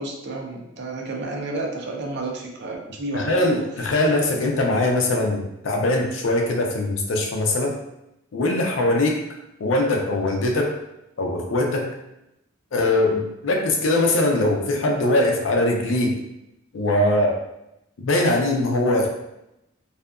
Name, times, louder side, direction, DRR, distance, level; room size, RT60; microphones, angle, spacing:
voice 1, 0.0-3.6 3.9-4.0 4.3-4.4, right 2 dB, 60° right, 1 dB, 0.5 m, -31 dB
voice 2, 3.1-7.7 8.3-9.2 9.6-10.7 11.2-11.9 12.7-16.2 16.7-17.4 18.0-19.1, left 2 dB, 70° left, 1 dB, 0.5 m, -21 dB
2.7 x 2.4 x 2.3 m, 0.86 s
head